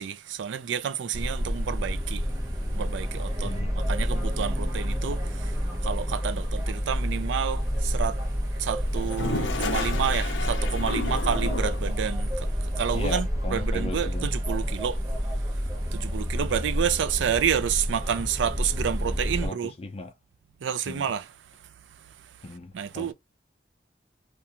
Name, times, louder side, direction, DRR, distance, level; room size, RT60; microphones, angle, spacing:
voice 1, 0.0-2.4 2.7-3.5 3.9-19.7 20.6-21.2 22.7-23.1, right 8 dB, 85° right, 0.4 m, -30 dB
sound 1, 1.1-19.5, equal, 15° right, 0.9 m, -29 dB
Toilet flush, 8.9-11.9, left 4 dB, 85° left, 0.5 m, -32 dB
voice 2, 12.9-14.3 16.4-16.7 19.4-20.1 20.9-21.1 22.4-23.1, left 2 dB, 30° left, 0.4 m, -37 dB
2.5 x 2.2 x 2.8 m
head